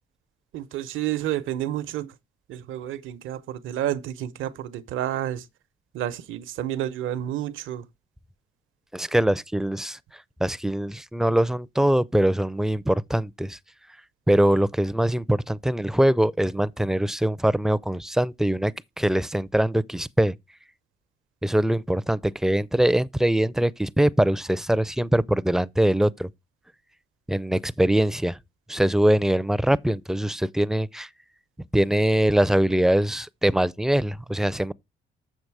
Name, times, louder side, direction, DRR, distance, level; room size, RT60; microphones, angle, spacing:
voice 1, 0.5-2.1 2.5-5.5 5.9-7.9, right 12 dB, 85° right, 0.8 m, -30 dB
voice 2, 8.9-10.0 10.4-13.6 14.3-20.3 21.4-26.3 27.3-28.4 28.7-31.1 31.7-34.7, right 1 dB, ahead, 0.4 m, -22 dB
7.0 x 6.6 x 4.6 m
cardioid pair, 90°, 20 cm